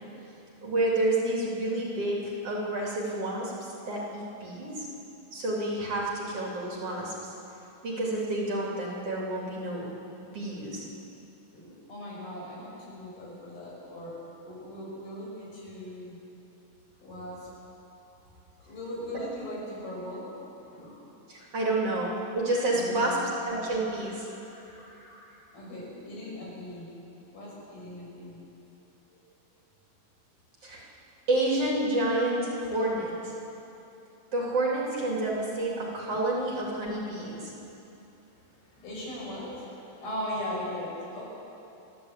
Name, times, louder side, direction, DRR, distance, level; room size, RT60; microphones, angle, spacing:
voice 1, 0.6-4.9 5.3-7.3 7.8-9.9 10.3-10.9 21.3-23.2 23.5-24.3 30.6-30.9 31.3-33.3 34.3-37.5, right 1 dB, 40° right, -3 dB, 3.7 m, -29 dB
voice 2, 11.5-14.2 14.4-16.2 17.0-17.5 18.6-20.4 20.7-21.1 21.4-21.5 22.2-22.3 22.7-23.3 23.8-23.9 24.2-26.9 27.3-28.4 29.1-29.2 36.1-36.2 38.6-41.2, left 1 dB, 75° left, -5 dB, 8.0 m, -39 dB
29.5 x 11.5 x 8.3 m, 2.9 s
omnidirectional pair, 4.4 m